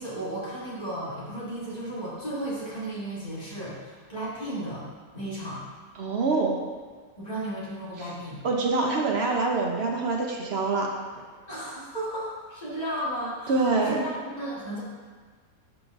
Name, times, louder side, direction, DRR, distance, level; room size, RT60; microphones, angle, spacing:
voice 1, 0.0-4.8 5.1-5.6 7.2-8.4 11.5-14.0 14.4-14.8, right 1 dB, 25° left, -9 dB, 1.7 m, -34 dB
voice 2, 6.0-6.6 8.0-8.1 8.4-11.2 13.5-14.0, right 3 dB, 60° right, 0 dB, 0.7 m, -25 dB
10.5 x 4.0 x 2.5 m, 1.5 s
omnidirectional pair, 1.7 m